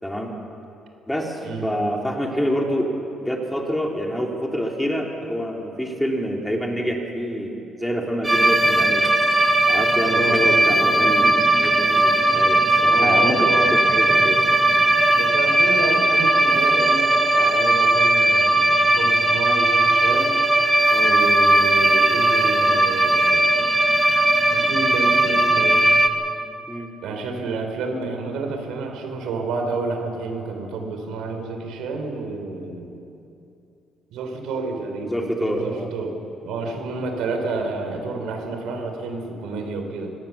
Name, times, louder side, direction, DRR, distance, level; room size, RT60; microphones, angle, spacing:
voice 1, 0.0-0.3 1.1-2.9 3.2-9.1 9.7-14.4 20.9-21.2 26.7-26.9 35.0-35.9, equal, 5° left, 0 dB, 2.7 m, -27 dB
voice 2, 1.4-1.9 10.0-10.8 12.9-13.7 15.1-20.4 21.0-23.7 24.5-25.8 27.0-32.9 34.1-36.2 36.4-40.1, right 3 dB, 90° right, 4 dB, 3.6 m, -29 dB
sound 1, 8.2-26.1, right 1 dB, 10° right, 1.6 m, -18 dB
24.5 x 18.0 x 7.0 m, 2.8 s
cardioid pair, 120°, 0 cm